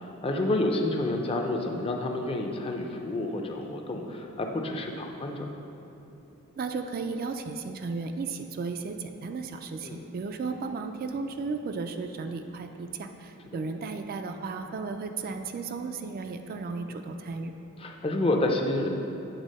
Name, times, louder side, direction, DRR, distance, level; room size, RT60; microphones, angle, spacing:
voice 1, 0.0-5.6 9.8-10.0 13.5-13.6 17.8-18.9, left 2 dB, 25° left, 3 dB, 0.5 m, -29 dB
voice 2, 6.6-17.5, right 4 dB, 45° right, 6 dB, 0.3 m, -34 dB
8.2 x 3.6 x 5.2 m, 2.8 s
head